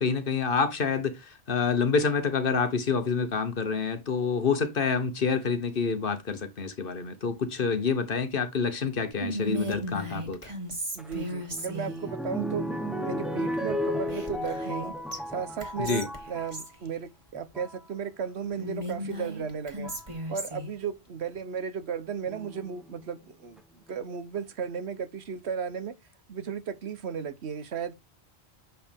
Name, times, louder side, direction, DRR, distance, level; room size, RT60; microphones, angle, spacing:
voice 1, 0.0-10.4 15.8-16.1, left 5 dB, 55° left, 1.3 m, -27 dB
Whispering, 9.2-12.0 14.1-14.8 15.1-15.2 15.6-16.7 18.6-20.7, equal, 30° right, 1.8 m, -35 dB
voice 2, 10.9-12.6 13.0-14.9 15.3-19.9 20.3-23.6 23.9-25.9 26.3-27.9, right 7 dB, 80° right, 1.2 m, -35 dB
sound 1, 11.0-16.6 17.3-17.8 19.0-19.1 19.8-20.1 22.3-22.9 23.6-23.7 23.9-24.0, equal, ahead, 0.8 m, -34 dB
7.2 x 5.1 x 3.4 m
omnidirectional pair, 1.1 m